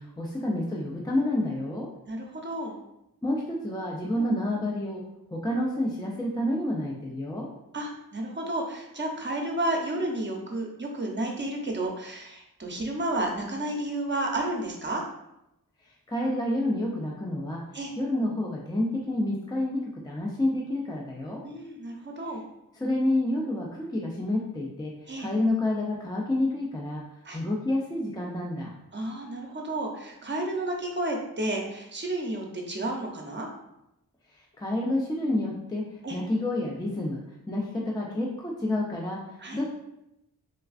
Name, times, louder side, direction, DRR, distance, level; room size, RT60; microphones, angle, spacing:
voice 1, 0.0-1.9 3.2-5.0 5.3-7.5 16.1-17.6 18.0-21.4 22.7-24.9 25.2-27.0 27.3-28.7 34.6-35.8 36.1-37.2 37.5-39.6, left 1 dB, 10° left, -2 dB, 0.4 m, -29 dB
voice 2, 2.1-2.8 4.1-4.3 7.7-15.0 17.7-17.9 21.4-22.4 25.1-25.3 27.2-27.4 28.9-33.5 36.0-36.2 39.4-39.6, right 1 dB, 30° right, 0 dB, 0.7 m, -31 dB
3.2 x 2.3 x 2.4 m, 0.86 s
cardioid pair, 45°, 37 cm